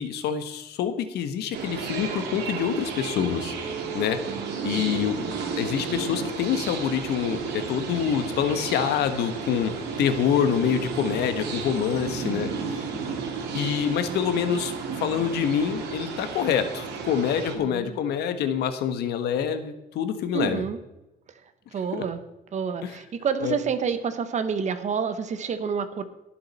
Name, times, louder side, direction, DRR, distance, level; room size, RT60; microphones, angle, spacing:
voice 1, 0.0-3.5 3.9-4.2 4.6-5.2 5.6-9.7 10.0-12.8 13.5-20.6 21.9-22.0 23.4-23.5, left 8 dB, 75° left, 10 dB, 1.3 m, -26 dB
sound 1, 1.5-17.5, right 5 dB, 75° right, 2.8 m, -33 dB
voice 2, 4.3-5.4 12.2-12.5 14.1-14.2 17.5-18.0 20.3-20.8 21.3-22.2 22.5-26.1, right 6 dB, 45° right, 10 dB, 1.3 m, -30 dB
18.5 x 7.6 x 4.3 m, 0.99 s
cardioid pair, 110°, 17 cm